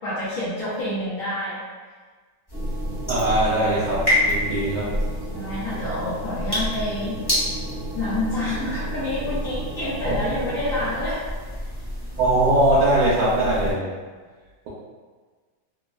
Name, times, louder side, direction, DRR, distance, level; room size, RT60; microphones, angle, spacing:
voice 1, 0.0-1.6 5.3-7.1 7.9-11.2, left 1 dB, 65° left, -10 dB, 0.8 m, -28 dB
sound 1, 2.5-13.7, left 1 dB, 15° left, 0.9 m, -29 dB
sound 2, 2.5-11.0, right 2 dB, 55° right, 1.2 m, -36 dB
voice 2, 3.1-4.9 10.0-10.1 12.2-13.9, right 1 dB, 75° right, -8 dB, 1.3 m, -21 dB
3.4 x 2.0 x 2.3 m, 1.4 s
omnidirectional pair, 2.1 m